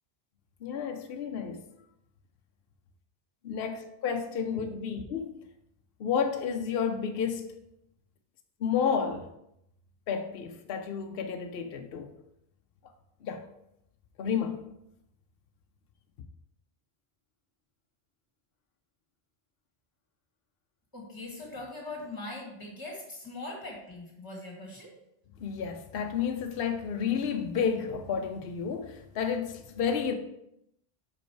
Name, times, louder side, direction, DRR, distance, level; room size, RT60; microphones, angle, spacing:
voice 1, 0.6-1.6 3.4-5.3 6.0-7.5 8.6-9.3 10.1-12.1 13.2-13.4 14.2-14.7 25.4-30.1, left 7 dB, 70° left, 0.8 m, -31 dB
voice 2, 20.9-24.9, left 2 dB, 20° left, 1.6 m, -41 dB
5.3 x 5.2 x 4.5 m
omnidirectional pair, 1.1 m